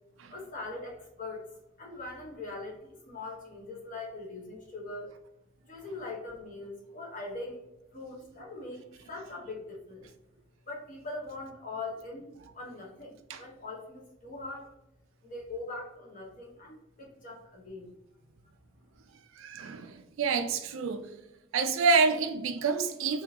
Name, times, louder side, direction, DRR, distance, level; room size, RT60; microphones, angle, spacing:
voice 1, 0.3-1.4 1.8-5.1 5.7-7.6 7.9-8.8 9.1-10.1 10.7-14.6 15.2-17.9, left 2 dB, 40° left, 1.0 m, -41 dB
voice 2, 19.4-21.1 21.5-23.2, right 4 dB, 80° right, 0.4 m, -28 dB
3.5 x 2.7 x 2.8 m
head